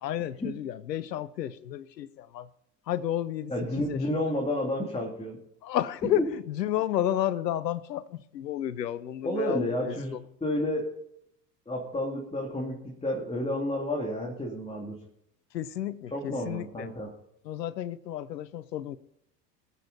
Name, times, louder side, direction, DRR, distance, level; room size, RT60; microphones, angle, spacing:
voice 1, 0.0-2.5 2.9-3.5 3.9-4.0 5.6-6.2 6.6-9.7 15.5-16.9 17.5-19.0, left 12 dB, 80° left, 0.8 m, -31 dB
voice 2, 3.5-5.4 6.1-6.3 9.2-10.9 11.7-15.0 16.1-17.1, left 1 dB, 10° left, 2.8 m, -31 dB
22.0 x 8.3 x 4.2 m
hypercardioid pair, 85°, 49 cm